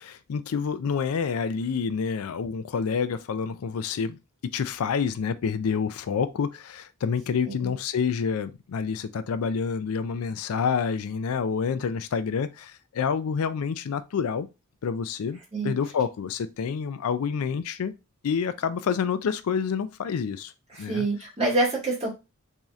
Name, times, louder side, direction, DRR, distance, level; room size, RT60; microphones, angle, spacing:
voice 1, 0.0-4.2 4.5-14.5 14.8-15.4 15.6-17.9 18.2-20.5 20.8-21.1, left 6 dB, 90° left, 0.4 m, -28 dB
voice 2, 20.9-22.1, right 2 dB, 30° right, 1.9 m, -26 dB
3.6 x 2.8 x 3.0 m
head